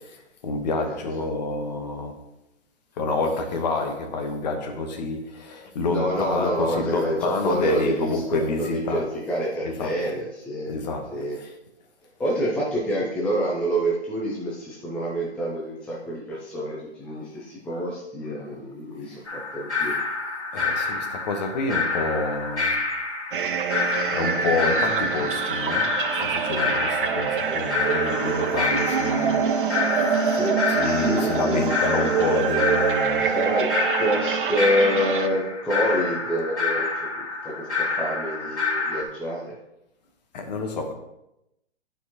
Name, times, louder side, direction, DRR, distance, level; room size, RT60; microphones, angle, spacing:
voice 1, 0.4-2.2 3.0-9.1 9.6-10.0 10.7-11.5 20.5-22.8 23.8-29.5 30.7-33.3 40.3-40.9, left 3 dB, 40° left, 1.2 m, -28 dB
voice 2, 5.8-10.7 11.1-11.4 12.2-20.0 24.6-24.7 27.5-27.6 30.2-31.6 33.2-33.7 34.0-36.9 37.2-39.5, equal, 5° left, 0.5 m, -27 dB
sound 1, 19.3-39.0, left 4 dB, 90° left, 2.2 m, -28 dB
sound 2, 23.3-35.3, right 6 dB, 50° right, 0.7 m, -25 dB
11.0 x 4.6 x 3.0 m
figure-of-eight pair, 130°, 33 cm